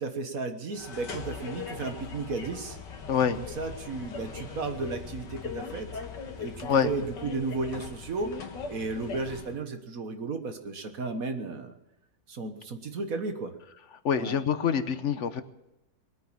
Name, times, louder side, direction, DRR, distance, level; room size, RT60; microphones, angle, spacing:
voice 1, 0.0-2.8 3.4-5.9 6.4-8.4 8.7-11.7 12.3-13.5 14.2-14.4, right 3 dB, 55° right, 7 dB, 1.7 m, -34 dB
sound 1, 0.7-9.6, left 5 dB, 75° left, 2.2 m, -40 dB
voice 2, 3.1-3.4 6.6-6.9 14.0-15.4, left 7 dB, 50° left, 11 dB, 1.1 m, -25 dB
20.5 x 9.3 x 7.3 m, 0.90 s
omnidirectional pair, 1.9 m